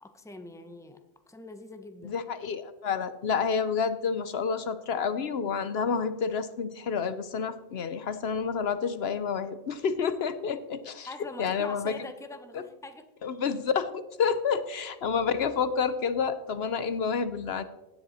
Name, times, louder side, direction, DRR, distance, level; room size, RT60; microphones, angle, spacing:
voice 1, 0.0-2.2 11.1-13.1, left 2 dB, 5° left, 8 dB, 0.9 m, -44 dB
voice 2, 2.0-11.1 11.4-12.0 13.2-17.6, left 6 dB, 70° left, 12 dB, 1.0 m, -29 dB
17.0 x 10.0 x 4.2 m, 1.0 s
omnidirectional pair, 1.1 m